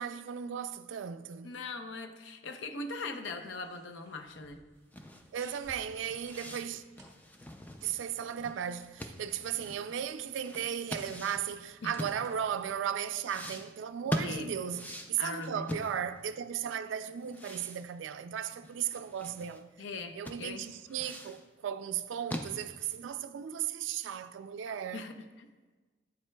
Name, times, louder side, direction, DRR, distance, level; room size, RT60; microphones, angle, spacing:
voice 1, 0.0-1.6 5.3-6.8 7.8-19.7 20.2-25.0, right 9 dB, 80° right, 0.3 m, -36 dB
voice 2, 1.4-4.6 11.8-11.9 14.2-14.5 15.2-15.7 19.8-20.6 24.9-25.5, left 3 dB, 75° left, 0.5 m, -40 dB
sound 1, 3.4-12.9, right 2 dB, 15° right, 1.0 m, -61 dB
sound 2, 4.9-12.6 13.2-16.4 16.7-16.8 17.2-19.6 19.9-20.0 20.2-21.4 21.9-23.1, left 1 dB, 10° left, 0.3 m, -42 dB
8.5 x 7.5 x 2.2 m
head